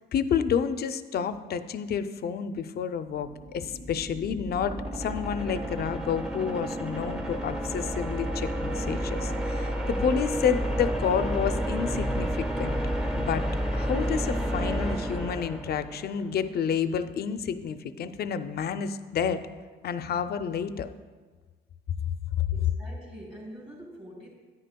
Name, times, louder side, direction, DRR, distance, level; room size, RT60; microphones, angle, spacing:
voice 1, 0.1-12.8 13.1-13.5 13.7-19.4 19.8-20.9, left 7 dB, 55° left, 11 dB, 0.5 m, -30 dB
sound 1, 3.1-16.2, equal, 5° right, 0.9 m, -31 dB
voice 2, 22.5-24.3, equal, 25° right, -8 dB, 2.8 m, -45 dB
10.0 x 9.8 x 2.2 m, 1.4 s
cardioid pair, 90°, 20 cm